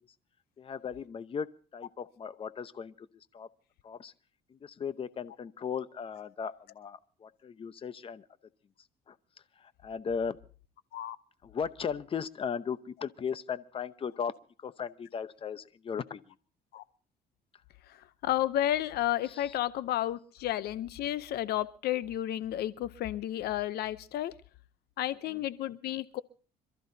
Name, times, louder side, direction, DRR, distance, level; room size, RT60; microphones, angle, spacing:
voice 1, 0.6-1.5 1.7-3.1 3.3-3.5 3.8-4.1 4.5-8.3 9.1-9.2 9.6-10.4 11.4-14.3 14.6-16.2 19.3-19.5 25.3-25.4, left 6 dB, 35° left, 14 dB, 0.8 m, -37 dB
voice 2, 18.2-24.3 25.0-26.2, left 13 dB, 70° left, 16 dB, 0.7 m, -32 dB
26.5 x 14.0 x 2.7 m, 0.39 s
cardioid pair, 110°, 17 cm